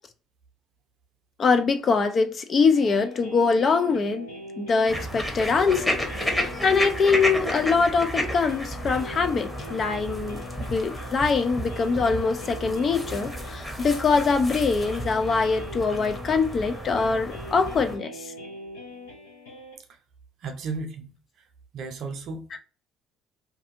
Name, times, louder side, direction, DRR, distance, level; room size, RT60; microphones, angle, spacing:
voice 1, 1.4-4.3 4.6-6.0 6.4-18.3 22.5-22.6, left 4 dB, 40° left, 0.4 m, -23 dB
sound 1, 2.7-19.8, left 1 dB, 80° left, 0.8 m, -42 dB
sound 2, 4.9-18.0, equal, 5° left, 0.9 m, -32 dB
voice 2, 20.4-21.1 21.7-22.6, right 4 dB, 60° right, 0.6 m, -34 dB
2.6 x 2.4 x 2.5 m
hypercardioid pair, 60°, 0 cm